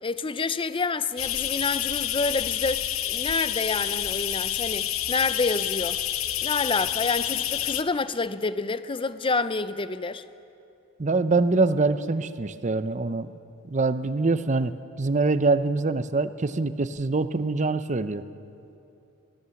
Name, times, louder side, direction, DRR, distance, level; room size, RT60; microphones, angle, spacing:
voice 1, 0.0-6.0 6.4-10.2, left 4 dB, 25° left, 0.6 m, -28 dB
sound 1, 1.2-7.8, left 11 dB, 70° left, 0.8 m, -28 dB
voice 2, 11.0-13.3 13.6-18.2, right 3 dB, 35° right, 0.7 m, -24 dB
23.5 x 17.0 x 7.1 m
head